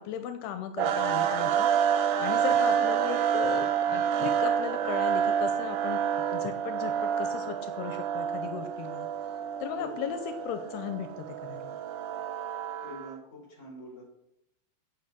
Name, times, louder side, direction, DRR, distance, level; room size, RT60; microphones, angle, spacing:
voice 1, 0.0-1.7 2.2-6.0 6.3-9.1 9.6-10.2 10.5-11.8, left 9 dB, 85° left, 8 dB, 2.8 m, -36 dB
sound 1, 0.8-13.1, right 8 dB, 75° right, 2.0 m, -28 dB
voice 2, 2.4-2.8 9.7-10.1 12.8-14.1, equal, 15° left, -3 dB, 5.4 m, -45 dB
9.1 x 7.8 x 7.6 m, 0.82 s
omnidirectional pair, 4.6 m